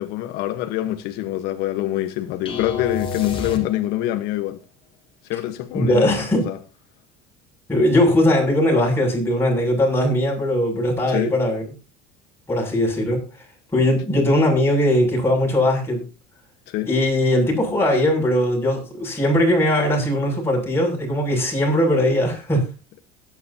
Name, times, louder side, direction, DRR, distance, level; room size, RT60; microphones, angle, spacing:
voice 1, 0.0-4.6 5.3-6.6 11.1-11.3 16.7-16.9, left 14 dB, 70° left, 1.2 m, -25 dB
sound 1, 2.5-4.2, left 5 dB, 30° left, 3.3 m, -30 dB
voice 2, 5.7-6.5 7.7-11.6 12.5-13.2 13.7-16.0 16.9-22.6, left 1 dB, 15° left, 7.1 m, -19 dB
22.5 x 9.8 x 2.8 m
cardioid pair, 130°, 17 cm